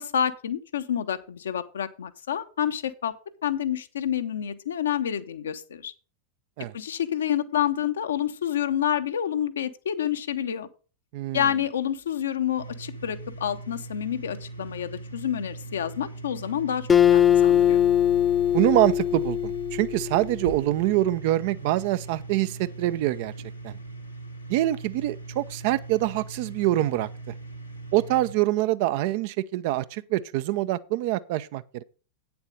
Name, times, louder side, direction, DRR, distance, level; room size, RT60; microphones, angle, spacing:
voice 1, 0.0-3.1 3.4-5.9 6.7-10.7 11.3-17.8, left 9 dB, 65° left, 0.8 m, -28 dB
voice 2, 11.1-11.4 18.5-23.3 23.6-23.8 24.5-27.3 27.9-31.8, right 15 dB, 50° right, 0.5 m, -25 dB
sound 1, 12.6-28.3, right 2 dB, 90° left, 1.7 m, -40 dB
Acoustic guitar, 16.9-20.4, left 10 dB, 20° left, 0.7 m, -21 dB
9.0 x 7.0 x 4.9 m
figure-of-eight pair, 90°, 0 cm